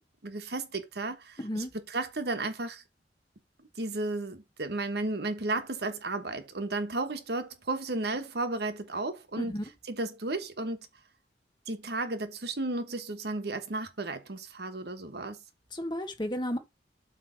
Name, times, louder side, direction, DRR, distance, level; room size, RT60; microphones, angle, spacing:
voice 1, 0.2-2.8 3.8-9.5 9.9-10.9 11.7-15.4, right 2 dB, 65° right, 1.2 m, -33 dB
voice 2, 1.4-1.7 9.4-9.6 15.7-16.6, equal, 25° left, 1.5 m, -33 dB
8.1 x 3.3 x 6.3 m
head